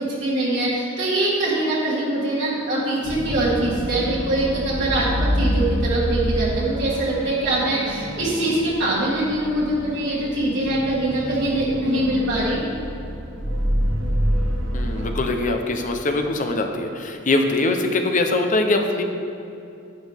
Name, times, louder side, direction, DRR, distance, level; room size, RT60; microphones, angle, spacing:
voice 1, 0.0-12.6, right 1 dB, 60° right, -8 dB, 1.8 m, -23 dB
sound 1, 3.0-15.1, equal, 75° right, 1.4 m, -27 dB
voice 2, 14.7-19.0, left 2 dB, 40° left, 5 dB, 0.8 m, -22 dB
10.5 x 10.0 x 3.5 m, 2.7 s
head